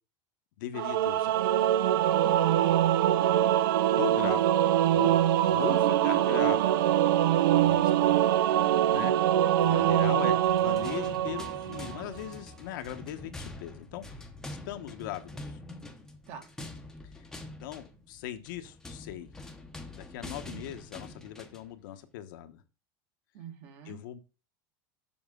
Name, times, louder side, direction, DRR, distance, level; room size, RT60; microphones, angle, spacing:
voice 1, 0.6-1.4 4.0-4.6 4.9-6.8 7.6-8.2 8.9-9.2 9.6-14.0 14.7-15.6 17.6-19.3 19.9-22.6 23.9-24.2, left 13 dB, 70° left, 1.0 m, -39 dB
Singing / Musical instrument, 0.7-12.0, right 11 dB, 90° right, 0.5 m, -24 dB
voice 2, 2.1-2.5 8.6-9.1 9.7-10.0 16.3-16.5 20.4-20.8 23.3-24.0, right 8 dB, 55° right, 1.8 m, -45 dB
sound 1, 10.3-21.7, left 2 dB, 5° left, 0.8 m, -45 dB
7.2 x 5.9 x 3.7 m
supercardioid pair, 165°, 11 cm